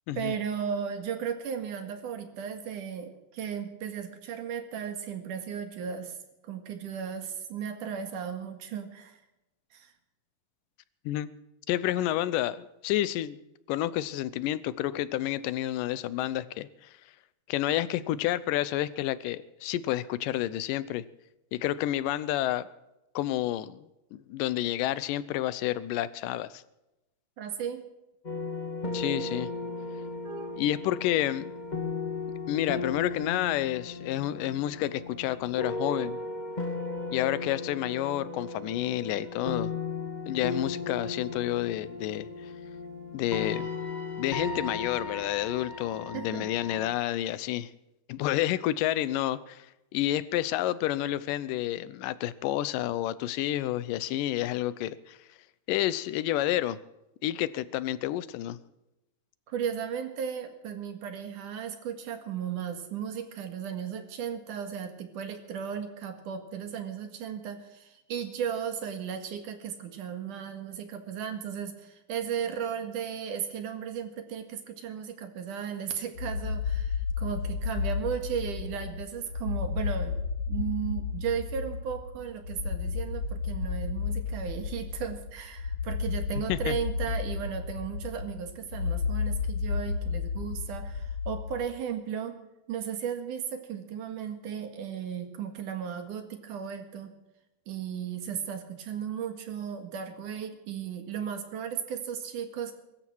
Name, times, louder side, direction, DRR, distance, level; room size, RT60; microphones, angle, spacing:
voice 1, 0.2-6.2 6.4-9.2 9.7-9.9 27.4-27.8 30.2-30.6 46.1-46.5 59.5-80.2 80.5-92.4 92.7-97.1 97.7-102.8, right 8 dB, 75° right, 6 dB, 3.3 m, -35 dB
voice 2, 11.7-13.4 13.7-16.9 17.5-21.0 21.5-22.7 23.2-26.6 28.9-29.5 30.6-31.5 32.5-36.2 37.1-39.7 40.3-42.5 43.1-43.7 44.2-47.7 48.1-49.7 49.9-55.2 55.7-56.8 57.2-58.6 86.5-86.7, left 13 dB, 90° left, 17 dB, 2.4 m, -30 dB
sound 1, 28.2-46.9, left 3 dB, 20° left, 1.5 m, -36 dB
sound 2, 76.1-91.7, left 5 dB, 45° left, 4.0 m, -32 dB
23.0 x 13.0 x 4.6 m, 0.95 s
omnidirectional pair, 3.7 m